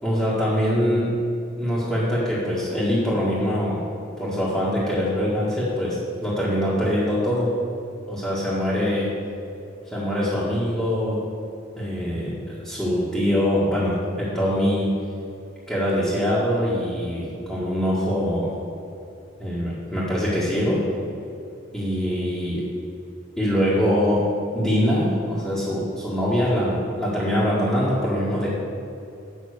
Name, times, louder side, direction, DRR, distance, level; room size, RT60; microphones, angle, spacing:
voice 1, 0.0-1.1 1.6-3.9 4.2-7.5 8.1-9.1 9.9-11.2 11.8-14.9 15.7-18.5 19.4-20.8 21.7-22.6 23.4-24.2 24.5-28.5, equal, 5° left, -11 dB, 1.8 m, -23 dB
8.7 x 5.9 x 6.6 m, 2.6 s
head